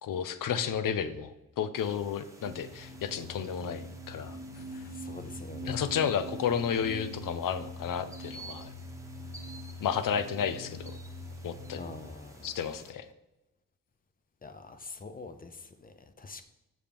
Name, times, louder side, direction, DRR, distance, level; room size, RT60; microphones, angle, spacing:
voice 1, 0.0-4.4 5.6-8.7 9.8-11.0 11.4-11.8 12.4-13.1, left 7 dB, 75° left, 12 dB, 0.6 m, -32 dB
sound 1, 1.8-12.9, right 2 dB, 10° right, 1.0 m, -53 dB
sound 2, 2.4-12.1, equal, 70° right, 0.8 m, -43 dB
voice 2, 4.9-5.8 11.8-12.5 14.4-16.4, left 4 dB, 25° left, 9 dB, 0.6 m, -45 dB
7.0 x 5.9 x 3.4 m, 0.99 s
cardioid pair, 85°, 33 cm